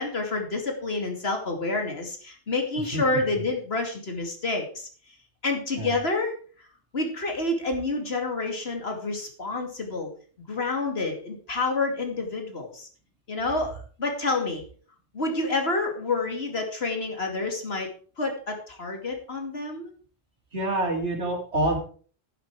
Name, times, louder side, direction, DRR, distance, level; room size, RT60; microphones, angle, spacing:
voice 1, 0.0-4.9 5.4-6.4 6.9-10.1 10.5-12.9 13.3-14.6 15.1-17.9 18.2-19.9, left 3 dB, 65° left, 3 dB, 2.8 m, -28 dB
voice 2, 20.5-21.8, right 1 dB, 90° right, 0 dB, 3.8 m, -26 dB
11.5 x 11.0 x 4.8 m, 0.42 s
omnidirectional pair, 1.1 m